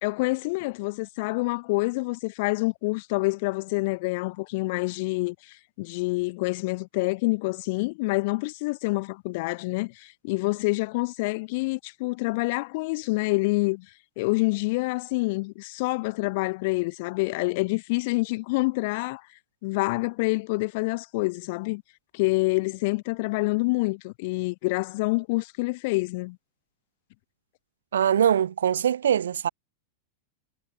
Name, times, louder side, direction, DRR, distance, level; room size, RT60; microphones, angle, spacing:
voice 1, 0.0-13.9 14.2-19.2 19.6-21.8 22.1-26.4, left 25 dB, 50° left, 4.3 m, -27 dB
voice 2, 27.9-29.5, right 9 dB, 65° right, 7.6 m, -22 dB
figure-of-eight pair, 90°, 0 cm